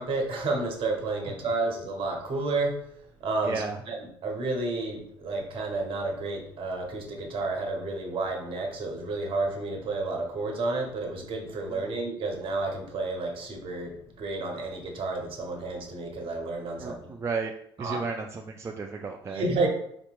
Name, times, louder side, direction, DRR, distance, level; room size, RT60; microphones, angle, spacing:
voice 1, 0.0-2.8 3.2-4.0 4.2-17.2 17.8-18.0 19.3-19.7, right 3 dB, 50° right, 2 dB, 0.9 m, -31 dB
voice 2, 3.4-3.8 11.7-12.0 16.8-17.5 17.8-19.5, right 4 dB, 25° right, 3 dB, 0.3 m, -34 dB
4.3 x 2.8 x 2.5 m, 0.68 s
hypercardioid pair, 55°, 12 cm